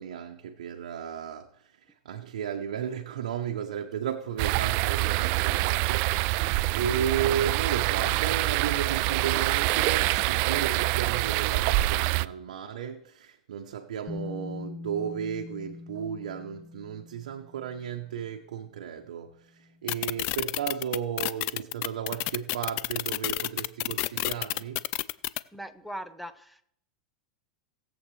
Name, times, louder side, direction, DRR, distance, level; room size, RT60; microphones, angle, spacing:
voice 1, 0.0-24.8, right 8 dB, 90° right, 0.8 m, -34 dB
sound 1, 4.4-12.3, right 19 dB, 50° right, 0.4 m, -26 dB
Bass guitar, 14.1-18.0 19.1-19.2, left 3 dB, 25° left, 1.2 m, -42 dB
sound 2, 19.9-25.4, left 19 dB, 50° left, 0.4 m, -29 dB
voice 2, 25.5-26.6, right 1 dB, ahead, 0.8 m, -40 dB
18.5 x 7.9 x 3.3 m
supercardioid pair, 130°, 4 cm